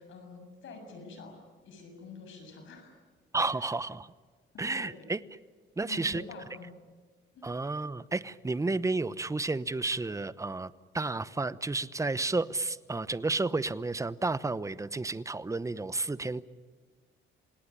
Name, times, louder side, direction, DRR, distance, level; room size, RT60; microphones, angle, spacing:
voice 1, 0.0-1.4 1.6-3.0 3.6-3.7 4.5-5.0 5.9-6.7 7.3-7.5, left 3 dB, 75° left, 6 dB, 7.3 m, -46 dB
voice 2, 3.3-4.1 4.6-5.2 5.8-6.2 7.4-16.4, right 3 dB, 15° right, 16 dB, 0.9 m, -31 dB
27.5 x 18.5 x 9.9 m, 1.5 s
cardioid pair, 90°, 20 cm